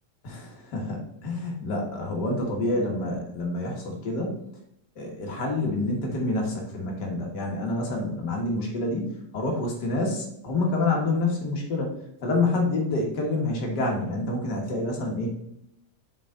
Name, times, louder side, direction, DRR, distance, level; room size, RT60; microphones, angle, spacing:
voice 1, 0.2-4.4 4.9-15.3, left 2 dB, 45° left, 0 dB, 1.4 m, -28 dB
7.1 x 5.7 x 3.8 m, 0.79 s
omnidirectional pair, 3.7 m